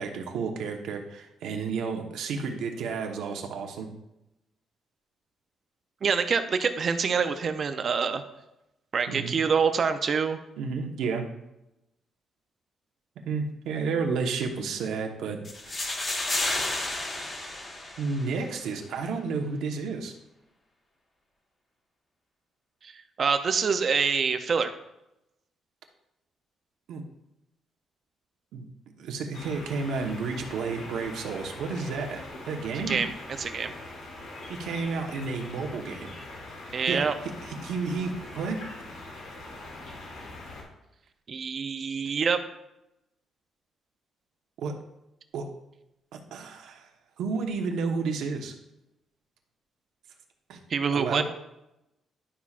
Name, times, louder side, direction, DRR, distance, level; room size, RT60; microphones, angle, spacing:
voice 1, 0.0-3.9 9.1-9.4 10.6-11.3 13.2-16.0 16.9-17.0 18.0-20.1 26.9-27.0 28.5-28.7 29.0-33.0 34.5-36.1 36.9-37.0 37.6-38.6 44.6-44.7 45.3-45.5 46.1-46.9 47.2-48.5 50.5-50.6 50.9-51.2, right 4 dB, 80° right, 3 dB, 1.1 m, -31 dB
voice 2, 6.0-8.2 8.9-10.4 22.8-24.7 32.9-33.1 33.4-33.7 36.7-37.1 41.3-42.4 50.7-51.2, right 5 dB, 35° right, 9 dB, 0.5 m, -26 dB
sound 1, 15.4-18.5, left 2 dB, 30° left, 1.1 m, -31 dB
sound 2, 29.3-40.6, left 2 dB, 85° left, 2.5 m, -42 dB
11.5 x 5.7 x 2.4 m, 0.89 s
cardioid pair, 165°, 0 cm